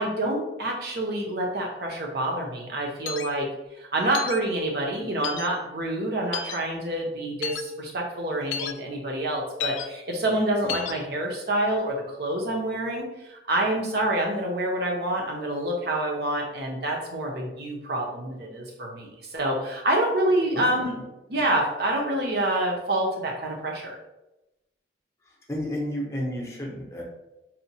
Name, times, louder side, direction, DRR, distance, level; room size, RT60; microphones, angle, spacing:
voice 1, 0.0-3.5 3.9-21.0 21.3-24.0, right 1 dB, 55° right, 0 dB, 0.7 m, -27 dB
sound 1, 3.1-3.3 4.1-4.4 5.2-5.5 6.3-6.6 7.4-7.6 8.5-8.7 9.6-9.8 10.7-10.9, left 8 dB, 85° left, 0.3 m, -31 dB
voice 2, 20.5-20.9 25.5-27.0, equal, 15° left, -3 dB, 0.6 m, -31 dB
4.2 x 2.2 x 2.7 m, 0.96 s
head